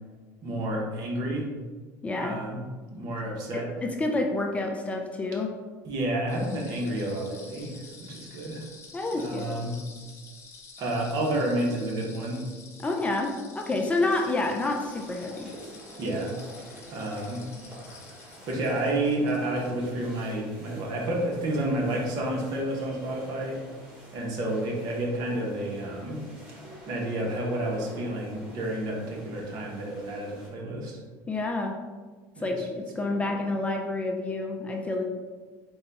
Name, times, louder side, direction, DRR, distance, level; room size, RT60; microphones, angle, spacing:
voice 1, 0.4-1.5 2.1-3.7 5.8-8.6 9.1-9.7 10.8-12.5 16.0-16.3 16.9-17.4 18.5-23.6 24.1-26.2 26.9-31.0 32.4-32.8 33.3-33.4, right 1 dB, 55° right, -1 dB, 1.0 m, -30 dB
voice 2, 2.0-2.3 3.5-5.5 8.9-9.5 12.8-15.5 31.3-31.7 32.4-32.6 33.0-35.0, left 2 dB, 15° left, 2 dB, 0.4 m, -28 dB
sound 1, 6.3-19.7, left 4 dB, 35° left, 0.8 m, -49 dB
sound 2, 14.0-30.5, equal, 15° right, 1.5 m, -47 dB
3.9 x 2.3 x 4.0 m, 1.4 s
supercardioid pair, 120°, 8 cm